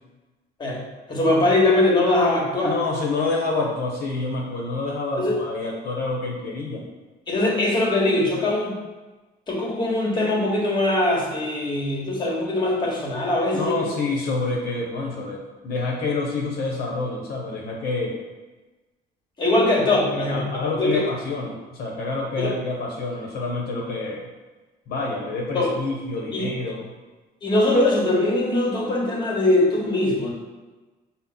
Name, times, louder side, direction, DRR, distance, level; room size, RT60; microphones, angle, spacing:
voice 1, 1.1-2.7 5.2-5.4 7.3-8.8 9.5-13.8 19.4-20.4 20.8-21.0 22.4-22.5 25.5-25.7 26.3-26.4 27.4-30.3, left 2 dB, 25° left, -2 dB, 1.2 m, -21 dB
voice 2, 2.6-6.9 13.5-18.2 20.3-24.2 24.9-26.9, left 3 dB, 65° left, -2 dB, 0.8 m, -27 dB
5.6 x 2.0 x 3.8 m, 1.2 s
cardioid pair, 110°, 17 cm